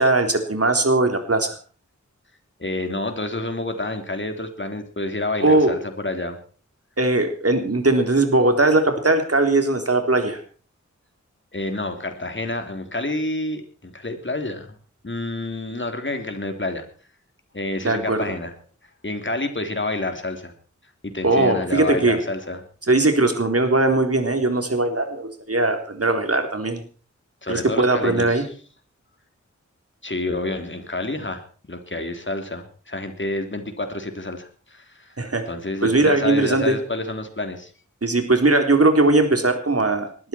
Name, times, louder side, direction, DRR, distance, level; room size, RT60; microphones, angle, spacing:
voice 1, 0.0-1.6 5.4-5.8 7.0-10.4 17.8-18.2 21.2-22.2 22.9-26.8 27.5-28.4 35.2-35.4 35.8-36.8 38.0-40.3, right 2 dB, 50° right, 6 dB, 3.7 m, -19 dB
voice 2, 2.6-6.4 11.5-14.7 15.0-16.9 17.5-18.5 19.0-20.5 21.0-22.6 27.4-28.5 30.0-31.4 31.7-35.1 35.5-37.7, left 2 dB, 40° left, 6 dB, 3.5 m, -28 dB
20.0 x 13.5 x 4.5 m, 0.40 s
wide cardioid pair, 70°, 30 cm